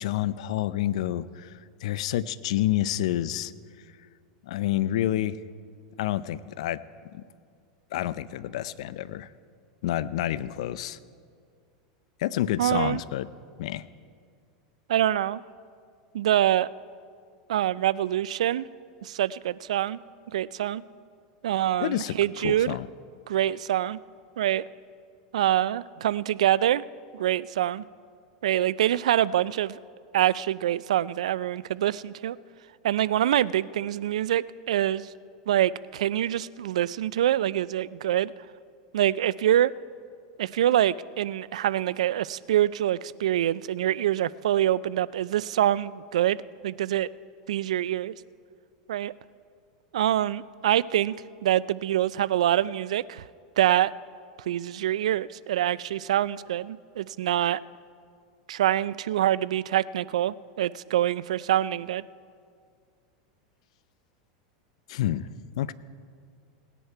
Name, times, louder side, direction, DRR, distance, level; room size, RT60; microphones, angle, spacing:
voice 1, 0.0-1.5 1.8-3.5 4.4-5.4 6.0-6.8 7.1-7.2 7.9-9.3 9.8-11.0 12.2-13.3 13.6-13.9 21.8-22.2 22.4-22.9 64.9-65.3 65.6-65.7, left 13 dB, 75° left, 17 dB, 0.5 m, -28 dB
voice 2, 12.6-13.0 14.9-15.4 16.1-16.7 17.5-18.6 19.0-20.0 20.3-20.8 21.4-22.8 23.3-24.0 24.4-24.6 25.3-26.8 27.1-27.8 28.4-29.8 30.1-32.4 32.8-35.1 35.5-38.3 38.9-39.7 40.4-46.4 46.6-47.1 47.5-48.1 48.9-49.1 49.9-51.1 51.4-53.2 53.6-53.9 54.5-57.6 58.5-62.0, right 12 dB, 85° right, 20 dB, 0.3 m, -25 dB
18.5 x 9.9 x 4.6 m, 2.2 s
hypercardioid pair, 115°, 3 cm